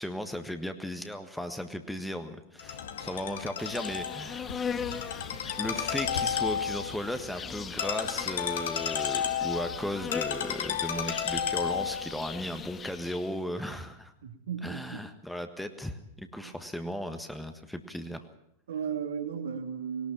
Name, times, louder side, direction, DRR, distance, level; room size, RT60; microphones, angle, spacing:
voice 1, 0.0-4.6 5.6-14.1 14.6-18.2, equal, ahead, 8 dB, 1.5 m, -36 dB
Ringtone, 2.6-12.2, left 8 dB, 60° left, 2.0 m, -33 dB
Insect, 3.6-13.4, left 6 dB, 20° left, 0.9 m, -40 dB
voice 2, 14.2-15.1 16.4-16.6 18.7-20.1, right 7 dB, 65° right, 5 dB, 2.4 m, -35 dB
20.5 x 18.5 x 7.4 m, 0.77 s
figure-of-eight pair, 90°, 0 cm